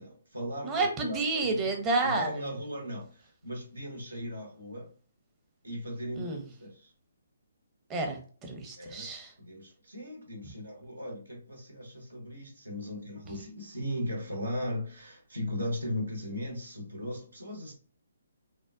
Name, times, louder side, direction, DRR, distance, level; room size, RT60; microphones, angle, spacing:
voice 1, 0.0-4.9 5.6-6.9 8.8-9.1 9.4-17.7, equal, 85° right, 1 dB, 1.0 m, -38 dB
voice 2, 0.6-2.3 6.2-6.4 7.9-9.3, right 3 dB, 20° right, 2 dB, 0.7 m, -30 dB
3.4 x 2.1 x 2.4 m, 0.41 s
figure-of-eight pair, 140°, 0 cm